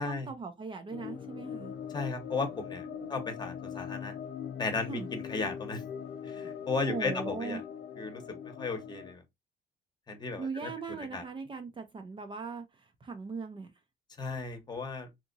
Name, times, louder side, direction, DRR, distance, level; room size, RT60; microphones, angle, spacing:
voice 1, 0.0-1.7 2.8-3.2 4.9-5.1 6.8-7.6 10.4-13.7, right 4 dB, 30° right, 0.6 m, -39 dB
sound 1, 0.9-9.1, left 8 dB, 85° left, 0.6 m, -41 dB
voice 2, 1.9-4.1 4.6-5.8 6.2-7.6 8.0-9.2 10.1-10.7 11.0-11.2 14.2-15.1, left 3 dB, 25° left, 1.0 m, -35 dB
3.5 x 2.9 x 2.6 m
cardioid pair, 110°, 17 cm